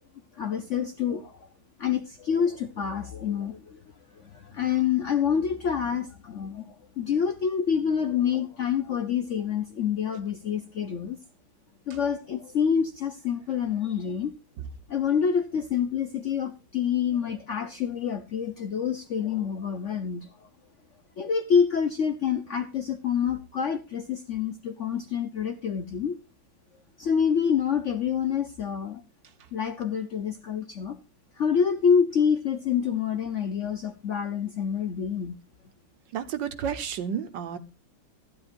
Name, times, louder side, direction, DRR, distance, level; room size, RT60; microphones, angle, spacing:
voice 1, 0.4-1.5 1.8-3.8 4.1-11.2 11.9-14.3 14.9-20.3 21.2-26.2 27.0-29.0 29.5-31.0 31.4-35.3, left 7 dB, 75° left, 8 dB, 0.6 m, -27 dB
voice 2, 36.1-37.6, right 8 dB, 65° right, 9 dB, 1.4 m, -31 dB
15.0 x 10.5 x 2.5 m, 0.28 s
omnidirectional pair, 2.3 m